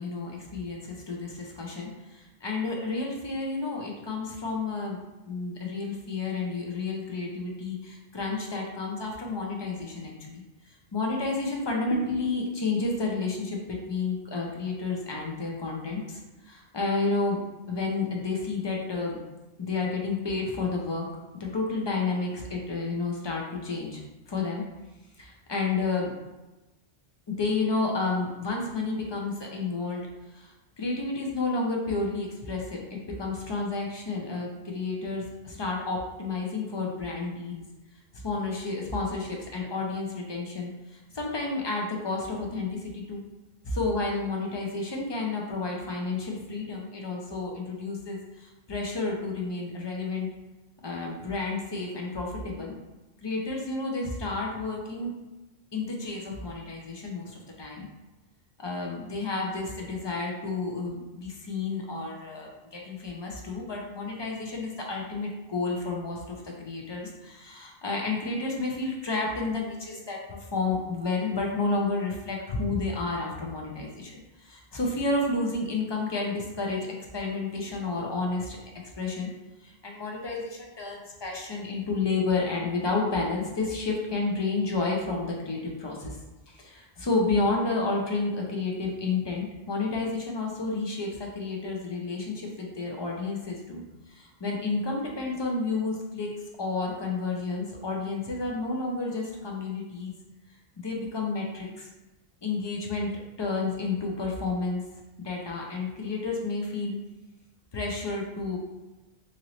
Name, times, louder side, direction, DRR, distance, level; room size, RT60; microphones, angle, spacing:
voice 1, 0.0-5.0 5.3-10.4 10.9-16.2 16.5-17.4 17.7-19.2 19.6-21.1 21.4-24.0 24.3-24.6 25.2-26.1 27.3-30.1 30.3-37.6 38.2-43.2 43.6-50.3 50.8-52.7 53.2-55.1 55.7-57.9 58.6-76.9 77.1-78.6 79.0-79.3 79.6-86.2 86.5-93.8 94.1-96.3 96.6-100.1 100.8-101.9 102.4-103.1 103.4-104.8 105.2-107.0 107.7-108.6, left 3 dB, 40° left, -1 dB, 0.4 m, -31 dB
2.8 x 2.6 x 2.9 m, 1.1 s
omnidirectional pair, 1.0 m